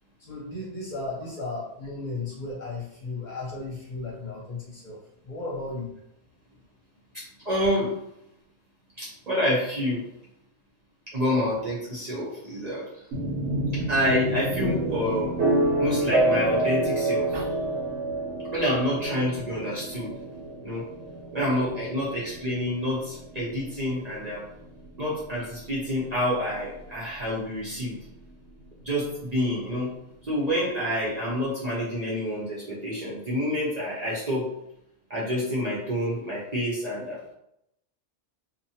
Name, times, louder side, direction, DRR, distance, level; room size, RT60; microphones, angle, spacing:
voice 1, 0.2-5.9 21.1-21.2, left 2 dB, 45° left, -5 dB, 0.8 m, -35 dB
voice 2, 7.1-8.0 9.0-10.0 11.1-13.1 13.7-15.4 15.8-17.4 18.5-20.2 20.6-20.9 21.3-24.5 25.0-28.0 28.8-30.0 30.2-34.5 35.1-37.2, equal, 45° right, -7 dB, 0.6 m, -28 dB
sound 1, 13.1-26.9, right 2 dB, 80° right, 1.1 m, -28 dB
2.5 x 2.1 x 2.7 m, 0.80 s
omnidirectional pair, 1.2 m